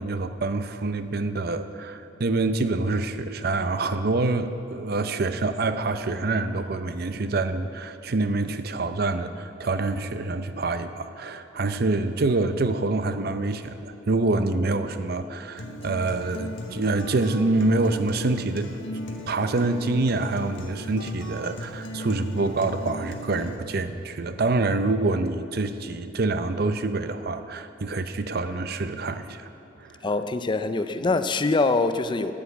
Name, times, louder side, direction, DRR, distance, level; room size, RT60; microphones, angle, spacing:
voice 1, 0.0-18.7 19.3-29.5 29.8-30.0, right 2 dB, 55° right, 10 dB, 0.6 m, -26 dB
Acoustic guitar, 15.6-23.6, equal, 90° left, 1.5 m, -37 dB
voice 2, 30.0-32.3, left 3 dB, 25° left, 10 dB, 0.4 m, -24 dB
10.0 x 10.0 x 8.3 m, 2.9 s
head